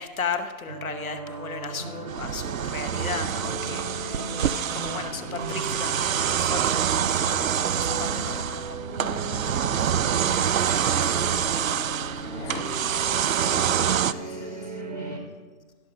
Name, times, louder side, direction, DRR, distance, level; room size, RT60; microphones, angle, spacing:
voice 1, 0.0-6.8 7.2-9.4 9.7-9.9 14.1-14.4, left 5 dB, 70° left, 8 dB, 1.1 m, -36 dB
sound 1, 0.7-15.2, right 3 dB, 30° right, 0.7 m, -36 dB
sound 2, 1.4-8.2 9.3-9.7 10.0-10.1 10.7-10.8 11.0-11.7 12.0-12.6, left 3 dB, 45° left, 1.2 m, -45 dB
sound 3, 2.1-14.1, right 9 dB, 65° right, 0.5 m, -26 dB
voice 2, 7.9-8.4 10.6-15.2, equal, 10° left, 0 dB, 0.8 m, -42 dB
16.0 x 5.7 x 5.2 m, 1.4 s
figure-of-eight pair, 155°, 44 cm